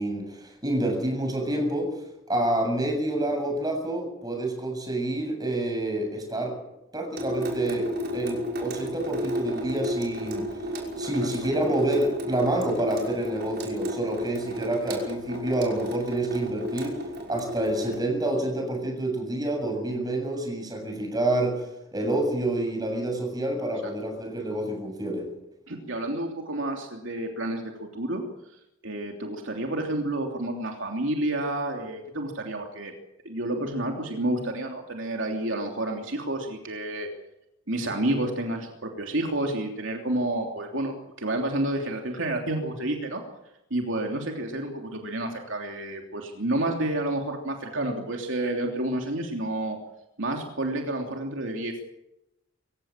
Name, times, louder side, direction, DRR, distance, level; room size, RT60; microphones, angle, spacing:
voice 1, 0.0-1.9 2.3-6.6 6.9-10.6 11.0-17.0 17.3-21.7 21.9-25.3, right 1 dB, 20° right, 3 dB, 7.3 m, -28 dB
Water tap faucet / Sink (filling or washing) / Drip, 7.2-18.0, left 1 dB, 50° right, 5.8 m, -32 dB
voice 2, 25.7-28.2 28.8-32.9 33.2-37.1 37.7-43.2 43.7-49.8 50.2-51.8, right 1 dB, 65° right, 2 dB, 3.2 m, -30 dB
25.0 x 16.5 x 7.5 m, 0.87 s
head